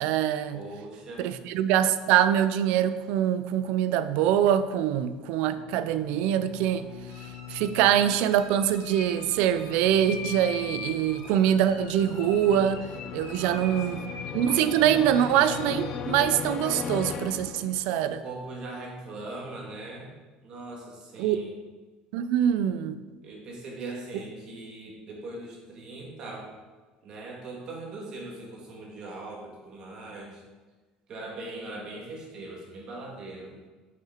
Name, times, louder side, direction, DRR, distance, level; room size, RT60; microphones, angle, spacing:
voice 1, 0.0-0.6 1.2-6.9 7.5-12.8 13.1-14.0 14.3-18.2 21.2-21.4 22.1-23.0, right 10 dB, 70° right, 12 dB, 0.4 m, -24 dB
voice 2, 0.5-1.3 13.3-14.0 18.0-20.1 20.4-21.5 23.2-26.5 27.0-30.4 31.1-33.6, right 2 dB, 40° right, -1 dB, 1.7 m, -40 dB
sound 1, 5.4-18.1, left 7 dB, 40° left, 0.3 m, -39 dB
sound 2, 7.1-16.0, left 5 dB, 65° left, 1.4 m, -43 dB
6.0 x 5.8 x 4.3 m, 1.3 s
cardioid pair, 150°, 2 cm